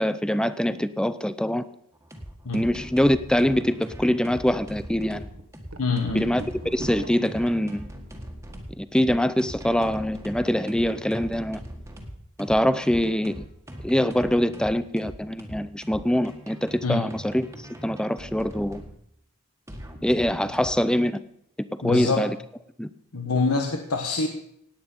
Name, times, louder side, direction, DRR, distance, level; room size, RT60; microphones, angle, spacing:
voice 1, 0.0-1.6 2.5-5.3 6.1-6.4 6.7-7.9 8.8-11.6 12.4-13.4 13.8-18.8 20.0-21.2 21.8-22.4 22.8-22.9, equal, 5° left, 14 dB, 0.5 m, -24 dB
sound 1, 1.9-18.9 19.7-20.8, equal, 10° right, 1.7 m, -41 dB
sound 2, 3.1-3.2 3.6-3.7 4.3-4.5 5.0-8.8 9.1-9.6, right 2 dB, 65° right, 1.5 m, -43 dB
voice 2, 5.8-6.3 16.8-17.1 21.8-22.3 23.1-24.3, left 4 dB, 75° left, 4 dB, 1.3 m, -25 dB
17.5 x 9.0 x 5.5 m, 0.72 s
head